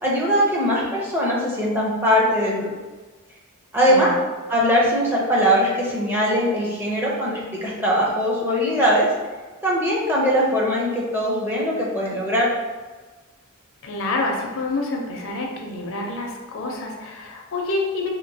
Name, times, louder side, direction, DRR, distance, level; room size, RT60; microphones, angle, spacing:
voice 1, 0.0-2.7 3.7-4.1 4.5-9.1 9.6-12.5, equal, 10° right, -5 dB, 0.6 m, -21 dB
voice 2, 13.8-18.1, left 2 dB, 65° left, 0 dB, 0.5 m, -27 dB
2.8 x 2.7 x 2.7 m, 1.3 s
head